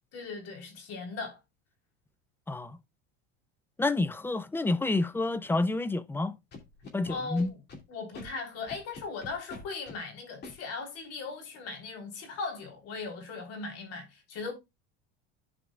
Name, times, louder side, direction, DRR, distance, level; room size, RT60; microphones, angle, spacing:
voice 1, 0.1-1.4 7.1-7.6 7.9-14.5, left 4 dB, 55° left, 3.4 m, -38 dB
voice 2, 2.5-2.8 3.8-6.3 6.9-7.5, left 2 dB, 5° left, 0.4 m, -29 dB
Scratching (performance technique), 6.5-7.8 8.1-8.3 8.7-10.0 10.4-10.5, left 3 dB, 35° left, 2.5 m, -44 dB
14.5 x 5.1 x 2.3 m
supercardioid pair, 130°, 31 cm